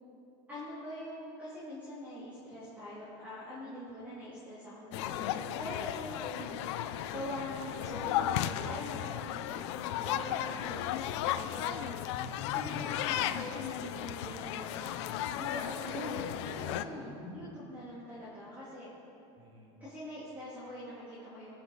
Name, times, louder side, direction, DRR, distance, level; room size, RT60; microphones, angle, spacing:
voice 1, 0.5-12.2 12.5-16.3 16.7-18.9 19.8-21.6, left 1 dB, 10° right, -10 dB, 2.8 m, -44 dB
sound 1, 4.9-16.8, left 12 dB, 75° left, 0.5 m, -35 dB
voice 2, 12.1-13.4 15.9-17.4 19.4-19.8, left 1 dB, 35° right, -2 dB, 2.4 m, -46 dB
19.5 x 6.8 x 4.1 m, 2.9 s
supercardioid pair, 135°, 15 cm